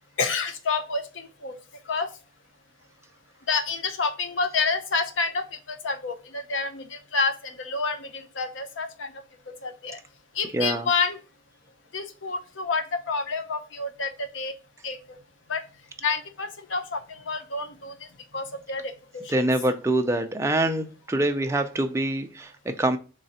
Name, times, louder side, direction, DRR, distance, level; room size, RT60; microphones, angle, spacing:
voice 1, 0.2-1.5 1.9-2.1 3.5-9.1 9.6-10.0 10.4-11.2 11.9-14.5 14.8-15.0 15.5-15.6 16.0-17.0 17.3-17.9 18.3-18.9, left 4 dB, 65° left, 0.7 m, -28 dB
voice 2, 10.5-10.9 19.3-23.0, right 1 dB, 15° right, 0.4 m, -25 dB
3.8 x 3.2 x 4.0 m
head